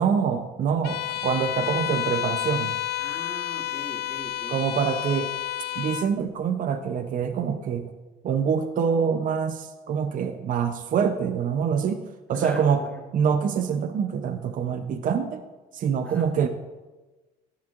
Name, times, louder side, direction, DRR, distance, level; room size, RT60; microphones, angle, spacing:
voice 1, 0.0-2.8 4.5-5.3 5.8-7.9 8.2-12.0 12.3-12.8 13.1-15.4 15.7-16.5, right 7 dB, 55° right, 8 dB, 0.6 m, -25 dB
Bowed string instrument, 0.8-6.1, left 13 dB, 80° left, 0.5 m, -30 dB
voice 2, 3.0-4.6 12.3-13.1 16.0-16.3, left 1 dB, 5° left, 0 dB, 1.5 m, -41 dB
12.0 x 9.7 x 2.5 m, 1.2 s
cardioid pair, 110°, 17 cm